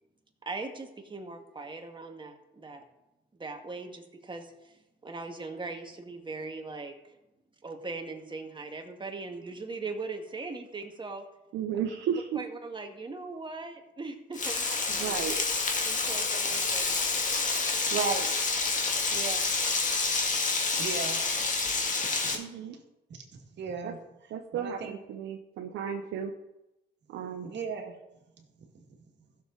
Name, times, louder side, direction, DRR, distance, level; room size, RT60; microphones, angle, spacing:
voice 1, 0.4-2.8 3.3-6.9 7.6-11.2 12.3-15.1 15.8-17.4, right 3 dB, 25° right, 3 dB, 1.9 m, -40 dB
voice 2, 11.5-12.4 15.0-15.4 17.9-18.3 19.1-19.4 22.3-22.8 23.8-23.9 24.3-26.3 27.1-27.5, right 7 dB, 85° right, 3 dB, 1.0 m, -33 dB
Frying (food), 14.3-22.4, left 4 dB, 40° left, 2.0 m, -28 dB
voice 3, 20.7-21.2 22.0-22.7 23.1-24.9 27.4-28.0 28.4-28.8, right 5 dB, 60° right, 2 dB, 2.2 m, -40 dB
15.0 x 6.9 x 4.0 m, 0.93 s
cardioid pair, 90°, 20 cm